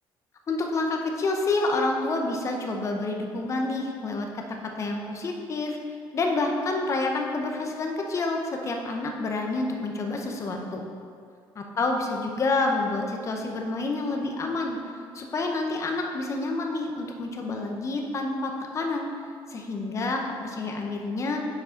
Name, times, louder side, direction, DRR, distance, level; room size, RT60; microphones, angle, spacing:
voice 1, 0.5-4.4 4.8-5.8 6.1-10.8 11.6-14.8 15.1-19.1 19.5-21.4, left 2 dB, 30° left, 2 dB, 0.8 m, -28 dB
6.8 x 4.7 x 5.1 m, 2.3 s
cardioid pair, 130°, 9 cm